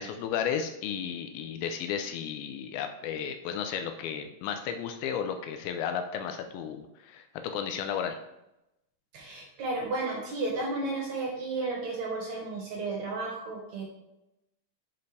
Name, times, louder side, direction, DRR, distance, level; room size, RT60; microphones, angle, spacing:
voice 1, 0.0-8.2, left 8 dB, 85° left, 6 dB, 2.1 m, -33 dB
voice 2, 9.1-13.8, right 3 dB, 70° right, -2 dB, 1.7 m, -33 dB
6.4 x 5.5 x 3.3 m, 0.89 s
omnidirectional pair, 4.9 m